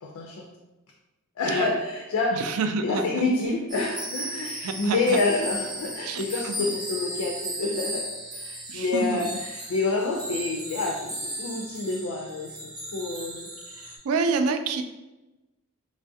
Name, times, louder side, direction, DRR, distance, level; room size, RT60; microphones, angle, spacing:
voice 1, 0.0-0.5 1.4-2.4 2.8-8.1 8.3-12.6 12.9-13.5, left 3 dB, 70° left, -1 dB, 0.4 m, -28 dB
voice 2, 1.5-1.8 2.3-3.2 4.6-5.2 6.1-6.7 8.7-9.3 13.7-14.8, right 4 dB, 75° right, 6 dB, 0.3 m, -28 dB
sound 1, 3.7-14.0, right 1 dB, 20° right, 0.6 m, -36 dB
3.2 x 2.4 x 2.6 m, 1.1 s
head